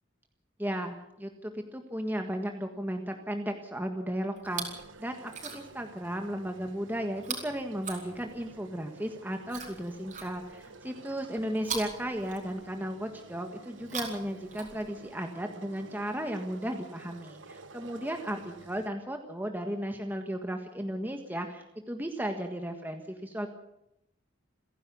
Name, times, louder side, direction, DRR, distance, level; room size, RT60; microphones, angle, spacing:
voice 1, 0.6-4.7 5.0-23.5, equal, 10° right, 4 dB, 1.6 m, -35 dB
Chewing mastication, 4.4-4.9 5.2-5.9 7.2-8.6 9.5-10.7 11.6-12.9 13.7-15.1 16.1-16.2, right 5 dB, 40° right, 4.7 m, -41 dB
sound 1, 4.4-18.9, right 3 dB, 75° right, 1.2 m, -51 dB
28.0 x 11.0 x 8.6 m, 0.83 s
head